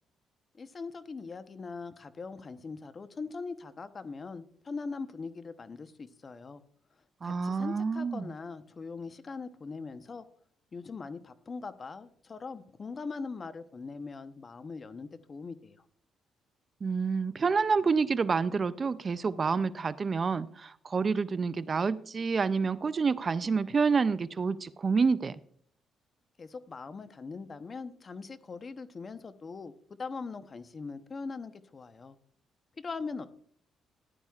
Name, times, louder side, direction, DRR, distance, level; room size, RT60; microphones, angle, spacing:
voice 1, 0.5-6.6 7.2-10.2 10.7-15.8 26.4-29.7 30.0-32.2 32.8-33.3, left 4 dB, 35° left, 11 dB, 0.9 m, -41 dB
voice 2, 7.2-8.3 16.8-25.4, right 5 dB, 40° right, 15 dB, 0.4 m, -28 dB
15.0 x 11.0 x 2.4 m, 0.62 s
cardioid pair, 90°, 0 cm